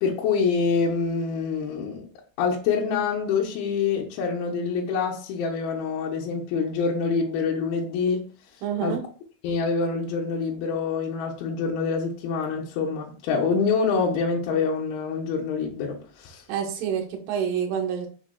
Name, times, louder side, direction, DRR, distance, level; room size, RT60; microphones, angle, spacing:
voice 1, 0.0-2.1 2.4-8.2 8.8-9.0 9.4-16.4, left 5 dB, 75° left, 2.4 m, -26 dB
voice 2, 8.6-9.0 16.5-18.1, right 8 dB, 75° right, 2.1 m, -27 dB
6.2 x 3.3 x 2.2 m
omnidirectional pair, 4.8 m